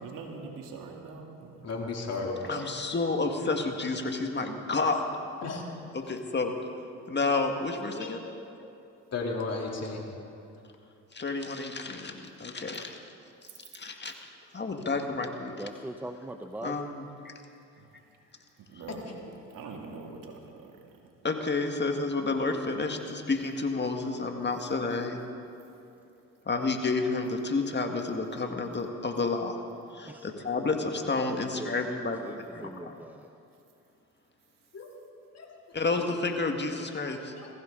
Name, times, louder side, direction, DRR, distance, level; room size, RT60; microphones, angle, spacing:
voice 1, 0.0-1.7 17.8-17.9 18.7-19.1 19.5-20.7 21.0-21.1, right 4 dB, 65° right, 1 dB, 2.7 m, -43 dB
voice 2, 1.6-2.6 5.4-5.6 7.9-8.3 9.1-10.1 34.7-34.9 35.3-35.6 36.0-36.1 37.3-37.5, left 3 dB, 45° left, -1 dB, 3.3 m, -34 dB
voice 3, 2.4-5.1 5.9-6.5 7.1-8.2 11.1-13.0 13.7-14.1 14.5-15.6 16.6-17.3 21.2-25.2 26.5-29.6 29.9-32.2 32.5-32.9 35.7-37.3, left 3 dB, 30° left, 4 dB, 1.8 m, -30 dB
voice 4, 15.6-16.9 30.1-30.3 31.3-33.3, right 1 dB, 5° right, 7 dB, 0.7 m, -41 dB
21.0 x 15.5 x 3.9 m, 2.6 s
supercardioid pair, 65°, 34 cm